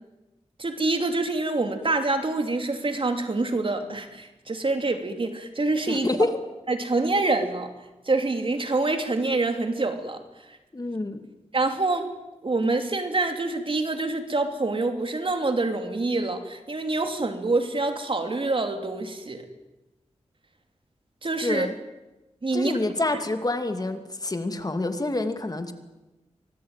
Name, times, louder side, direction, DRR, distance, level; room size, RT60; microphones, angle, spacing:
voice 1, 0.6-6.1 6.7-7.7 8.1-10.2 10.5-10.6 11.5-12.1 12.4-19.5 21.2-21.7 22.4-22.8, right 2 dB, 50° right, 6 dB, 3.1 m, -26 dB
voice 2, 5.9-6.3 10.7-11.2 21.4-21.8 22.5-25.7, left 2 dB, 35° left, 7 dB, 2.5 m, -27 dB
25.0 x 19.0 x 9.2 m, 1.0 s
wide cardioid pair, 75°, 12 cm